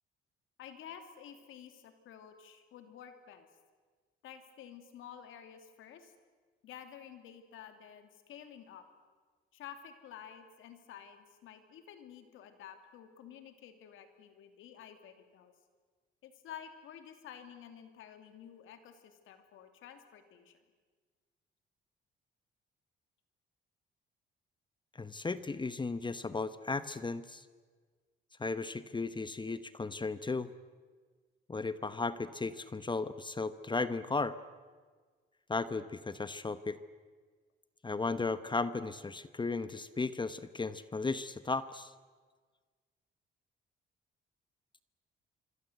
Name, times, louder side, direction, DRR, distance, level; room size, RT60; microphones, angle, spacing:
voice 1, 0.6-3.5 4.2-6.1 6.6-8.8 9.5-15.5 16.2-20.6, left 9 dB, 85° left, 7 dB, 2.9 m, -51 dB
voice 2, 24.9-27.4 28.4-30.5 31.5-34.4 35.5-36.8 37.8-41.9, left 3 dB, 25° left, 13 dB, 1.0 m, -35 dB
26.0 x 24.5 x 8.1 m, 1.5 s
cardioid pair, 90°, 20 cm